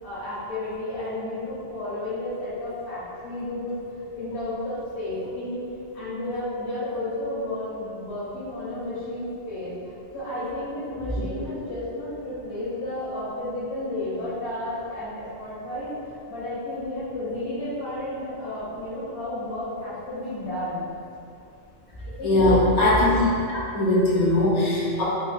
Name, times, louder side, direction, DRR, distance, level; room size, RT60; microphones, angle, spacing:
voice 1, 0.0-3.7 4.1-5.6 5.9-9.7 10.1-20.8 22.0-22.6, left 1 dB, 70° left, -12 dB, 1.2 m, -32 dB
voice 2, 22.2-23.3 23.5-25.0, left 1 dB, 45° left, -6 dB, 0.6 m, -20 dB
3.6 x 2.6 x 2.4 m, 2.6 s
omnidirectional pair, 1.2 m